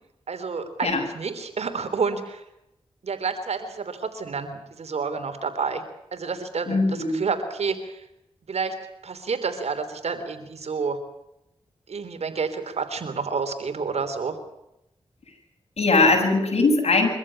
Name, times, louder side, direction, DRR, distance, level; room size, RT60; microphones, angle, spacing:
voice 1, 0.3-2.4 3.0-5.8 6.1-6.8 7.1-8.0 8.5-8.7 9.0-11.0 11.9-14.4, right 5 dB, 80° right, 9 dB, 3.3 m, -29 dB
voice 2, 6.7-7.2 15.8-17.1, left 3 dB, 70° left, 2 dB, 7.6 m, -20 dB
24.5 x 15.0 x 9.9 m, 0.87 s
cardioid pair, 50°, 11 cm